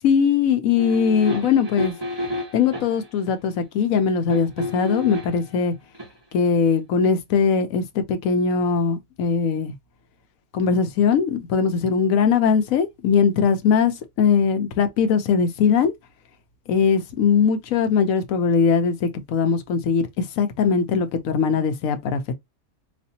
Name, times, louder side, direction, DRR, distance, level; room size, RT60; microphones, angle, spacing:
voice 1, 0.0-1.9 2.5-5.7 6.3-9.7 10.5-15.9 16.7-20.0 20.4-22.3, left 6 dB, 75° left, 1.1 m, -20 dB
sound 1, 0.8-3.1 4.3-5.5 5.9-6.1, left 1 dB, 20° right, 1.1 m, -30 dB
4.1 x 2.6 x 2.7 m
omnidirectional pair, 1.5 m